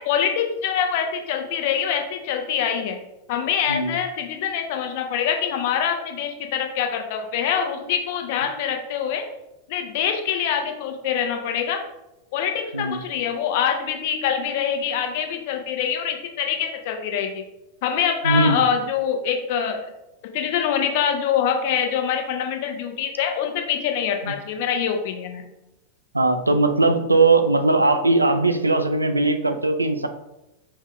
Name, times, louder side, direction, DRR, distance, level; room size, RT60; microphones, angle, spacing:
voice 1, 0.0-3.0 3.3-9.2 9.7-11.8 12.3-17.4 17.8-19.9 20.3-25.4, left 8 dB, 50° left, 4 dB, 0.6 m, -24 dB
voice 2, 3.7-4.0 12.7-13.0 18.2-18.6 24.2-24.3 26.1-30.1, right 2 dB, 80° right, 7 dB, 0.3 m, -19 dB
5.2 x 2.5 x 3.4 m, 0.92 s
figure-of-eight pair, 90°, 0 cm